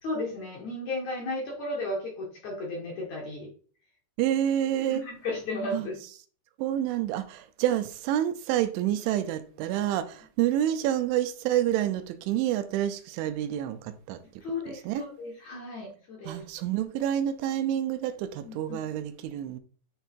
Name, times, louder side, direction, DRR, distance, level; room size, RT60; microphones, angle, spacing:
voice 1, 0.0-3.5 4.9-5.9 14.4-16.4 18.4-18.9, left 2 dB, 75° left, 1.7 m, -34 dB
voice 2, 4.2-5.0 5.7-5.9 6.6-13.8 14.1-14.2 14.9-15.1 16.3-19.6, right 11 dB, 80° right, 3.0 m, -28 dB
9.9 x 3.4 x 4.4 m
omnidirectional pair, 5.5 m